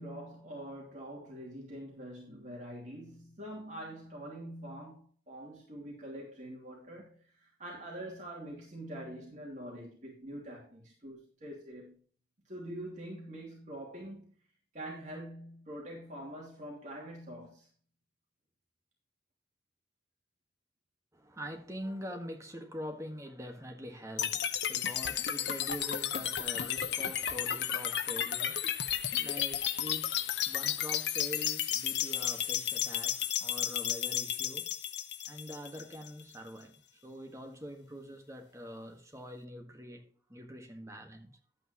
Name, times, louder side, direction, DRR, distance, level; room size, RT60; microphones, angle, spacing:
voice 1, 0.0-12.0 12.4-14.3 14.7-17.7, right 1 dB, 40° right, 2.8 m, -45 dB
voice 2, 21.1-34.7 35.3-41.4, equal, 15° right, 1.5 m, -44 dB
sound 1, 24.2-36.2, left 10 dB, 70° left, 0.9 m, -33 dB
12.0 x 8.6 x 3.0 m
head